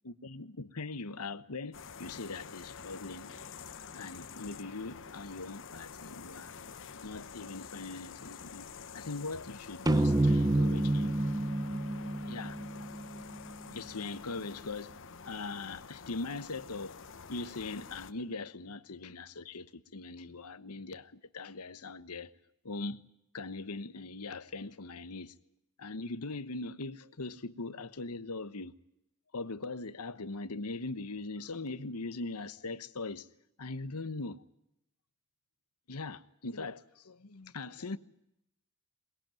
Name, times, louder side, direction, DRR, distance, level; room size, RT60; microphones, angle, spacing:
voice 1, 0.0-3.3 3.9-6.5 7.0-11.1 12.3-12.6 13.7-14.9 15.2-17.0 17.3-22.3 22.6-23.0 23.3-25.3 25.8-28.7 29.3-33.3 33.6-34.4 35.9-38.0, left 3 dB, 85° left, 1.2 m, -41 dB
sound 1, 1.7-18.1, left 5 dB, 60° left, 1.2 m, -48 dB
sound 2, 9.9-13.4, right 1 dB, 15° right, 0.9 m, -28 dB
22.0 x 21.0 x 9.1 m
head